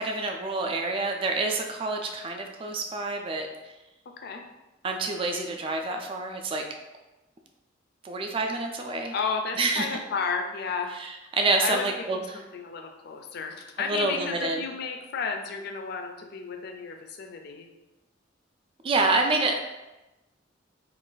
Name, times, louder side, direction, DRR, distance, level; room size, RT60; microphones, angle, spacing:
voice 1, 0.0-3.5 4.8-6.6 8.0-9.1 9.6-9.9 11.0-12.2 13.8-14.6 18.8-19.6, right 3 dB, 30° right, 3 dB, 0.3 m, -27 dB
voice 2, 9.1-10.9 11.6-17.7, left 5 dB, 55° left, 4 dB, 0.4 m, -33 dB
2.5 x 2.2 x 3.8 m, 1.1 s
head